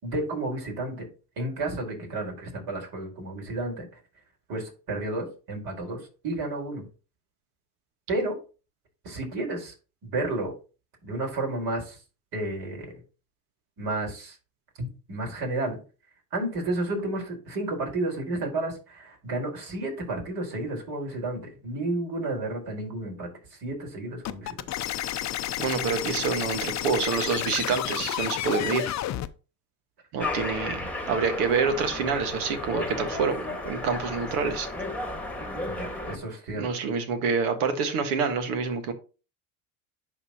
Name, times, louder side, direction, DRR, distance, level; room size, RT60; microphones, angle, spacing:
voice 1, 0.0-1.1 1.4-3.9 4.5-6.9 8.1-8.4 9.0-9.7 10.0-10.5 11.0-12.0 12.3-12.9 13.8-14.3 14.8-15.8 16.3-24.7 35.7-36.7, right 2 dB, 55° right, 4.4 m, -31 dB
sound 1, 24.2-29.3, left 13 dB, 40° left, 0.6 m, -31 dB
voice 2, 25.6-28.9 30.1-34.7 36.6-38.9, right 5 dB, 75° right, 1.6 m, -27 dB
sound 2, 30.2-36.2, left 2 dB, 5° left, 1.6 m, -33 dB
11.0 x 4.3 x 2.9 m
hypercardioid pair, 85°, 46 cm